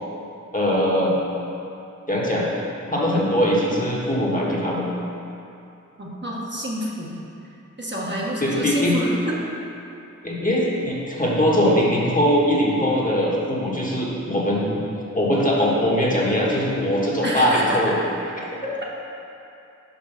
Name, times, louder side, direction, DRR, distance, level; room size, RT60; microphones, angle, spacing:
voice 1, 0.5-1.2 2.1-2.5 2.9-4.9 8.4-9.0 10.2-14.8 15.1-18.0 18.4-18.5, equal, 25° left, -5 dB, 1.3 m, -21 dB
voice 2, 6.0-7.1 7.8-9.4 17.2-17.8, right 1 dB, 35° right, -5 dB, 1.2 m, -28 dB
5.3 x 5.0 x 5.8 m, 2.7 s
wide cardioid pair, 40°, 31 cm